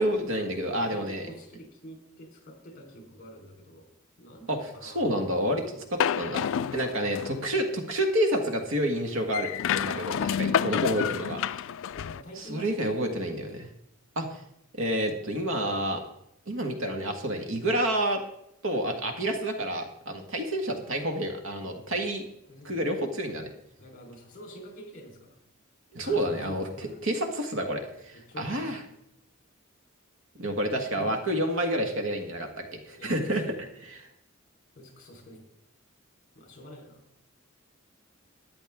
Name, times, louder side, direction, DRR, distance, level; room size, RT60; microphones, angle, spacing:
voice 1, 0.0-1.2 4.5-5.6 5.9-6.4 6.7-11.4 12.4-13.7 14.1-14.4 14.8-16.0 16.5-18.2 18.6-22.3 22.6-23.5 25.9-26.6 27.0-28.8 30.3-33.4 33.9-34.0, right 1 dB, 65° right, 4 dB, 1.6 m, -29 dB
voice 2, 0.6-3.9 4.2-5.2 5.7-5.9 11.9-13.7 15.4-15.9 21.6-22.0 22.5-22.8 23.8-25.4 26.0-27.0 28.1-28.8 30.9-31.1 33.0-33.7 34.8-35.4 36.4-37.0, equal, 40° left, 1 dB, 3.8 m, -46 dB
sound 1, 6.0-7.5 9.3-12.2, left 8 dB, 65° left, 0.3 m, -29 dB
13.5 x 9.9 x 3.6 m, 0.79 s
head